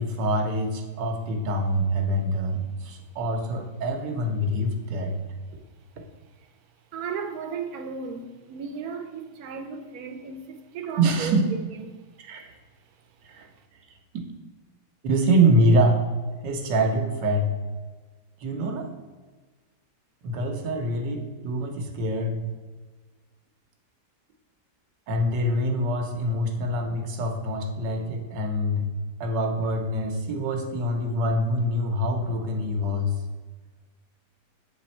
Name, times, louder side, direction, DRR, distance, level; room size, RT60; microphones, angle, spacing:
voice 1, 0.0-5.2 11.0-11.4 12.2-12.5 13.2-13.5 15.0-16.1 16.4-17.5 18.4-18.9 20.2-22.5 25.1-28.8 29.2-33.2, right 1 dB, 85° right, 1.5 m, -25 dB
voice 2, 6.9-11.5 11.8-11.9, right 5 dB, 65° right, 1.1 m, -35 dB
8.1 x 3.5 x 4.3 m
omnidirectional pair, 1.8 m